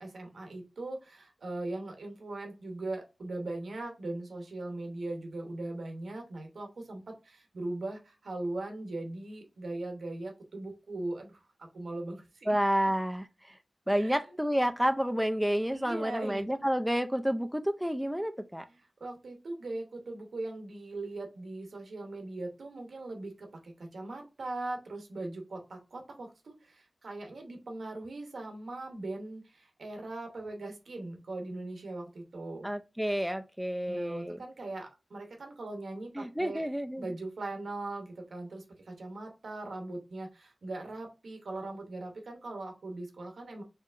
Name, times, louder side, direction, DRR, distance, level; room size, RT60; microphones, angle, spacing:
voice 1, 0.0-12.6 14.0-14.2 15.7-16.4 18.7-32.7 33.9-36.7 37.0-43.6, right 2 dB, 90° right, 0.9 m, -40 dB
voice 2, 12.5-13.3 13.9-18.7 32.6-34.4 36.2-37.0, equal, 5° right, 0.4 m, -29 dB
4.5 x 2.8 x 2.5 m
wide cardioid pair, 65°, 0 cm